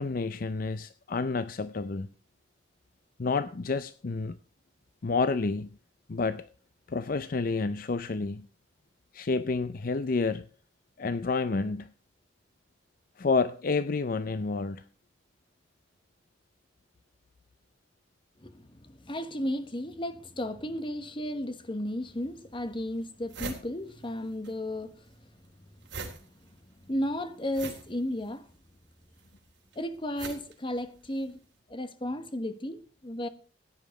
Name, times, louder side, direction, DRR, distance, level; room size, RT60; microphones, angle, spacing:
voice 1, 0.0-2.1 3.2-4.4 5.0-5.7 6.1-6.5 6.9-8.5 9.1-10.5 11.0-11.9 13.2-14.8, left 4 dB, 50° left, 0.5 m, -29 dB
voice 2, 18.4-25.0 26.8-28.5 29.8-31.4 31.7-33.3, left 1 dB, 30° left, 1.1 m, -34 dB
sound 1, 22.0-22.1 22.7-22.8 23.0-24.5 24.8-31.4, right 4 dB, 70° right, 3.5 m, -43 dB
15.5 x 9.7 x 4.8 m
head